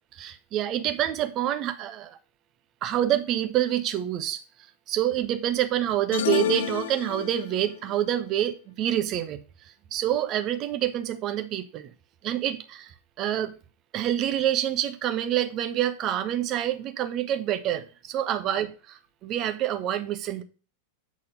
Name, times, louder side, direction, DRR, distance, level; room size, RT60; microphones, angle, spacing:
voice 1, 0.1-2.2 2.8-4.4 4.9-9.4 9.9-11.9 12.2-13.5 13.9-20.4, right 11 dB, 35° right, 1.0 m, -27 dB
sound 1, 6.1-7.7, left 10 dB, 60° left, 0.4 m, -29 dB
8.6 x 4.1 x 5.3 m
figure-of-eight pair, 90°, 0 cm